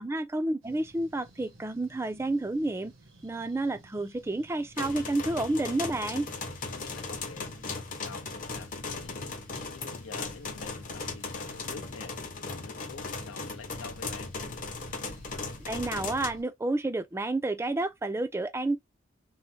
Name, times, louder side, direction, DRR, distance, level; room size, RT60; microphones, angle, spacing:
voice 1, 0.0-2.9 3.2-6.3 15.7-18.8, right 2 dB, 15° right, 0.3 m, -30 dB
sound 1, 0.6-16.4, right 1 dB, 85° right, 0.9 m, -53 dB
sound 2, 4.8-16.3, left 4 dB, 40° left, 0.7 m, -37 dB
voice 2, 6.6-9.2 9.7-12.2 12.4-14.3, left 5 dB, 90° left, 0.6 m, -47 dB
3.0 x 2.0 x 2.7 m
head